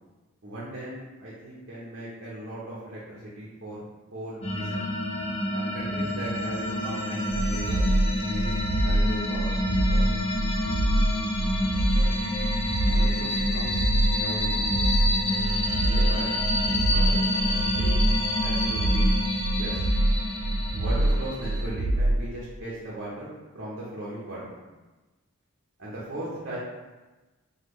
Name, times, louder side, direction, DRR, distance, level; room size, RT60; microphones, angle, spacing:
voice 1, 0.4-3.8 4.1-4.8 5.5-7.8 8.2-10.1 11.9-12.0 12.9-13.8 14.1-14.7 15.8-16.4 16.7-18.0 18.4-19.1 19.5-19.9 20.7-24.5 25.8-26.6, right 1 dB, 50° right, -7 dB, 0.7 m, -38 dB
sound 1, 4.4-21.6, left 1 dB, 25° left, 0.4 m, -28 dB
sound 2, 7.3-22.2, right 1 dB, 70° right, 0.3 m, -25 dB
3.6 x 2.3 x 3.1 m, 1.2 s
head